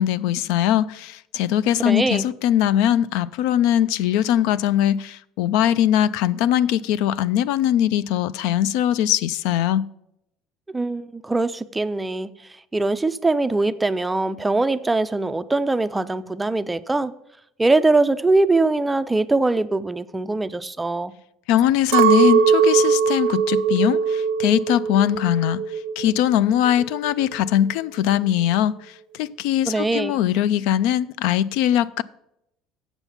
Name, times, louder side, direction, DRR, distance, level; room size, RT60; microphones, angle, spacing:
voice 1, 0.0-9.8 21.5-32.0, left 11 dB, 75° left, 0.3 m, -21 dB
voice 2, 1.8-2.2 10.7-17.1 17.6-21.1 29.6-30.2, right 2 dB, 10° right, 0.3 m, -22 dB
Chink clink, 21.9-26.3 26.5-27.4, right 7 dB, 80° right, 0.6 m, -20 dB
8.0 x 7.1 x 5.7 m
cardioid pair, 155°, 0 cm